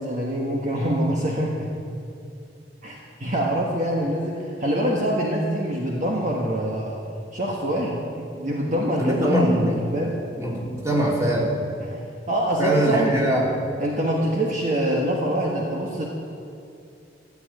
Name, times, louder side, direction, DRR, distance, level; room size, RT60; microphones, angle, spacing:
voice 1, 0.0-1.7 2.8-7.0 7.3-10.1 11.8-12.0 12.3-13.2 13.8-16.0, equal, 45° right, -2 dB, 1.4 m, -25 dB
voice 2, 9.0-9.8 10.4-11.5 12.6-13.5, right 1 dB, 15° right, -4 dB, 2.9 m, -22 dB
14.5 x 7.5 x 9.1 m, 2.6 s
head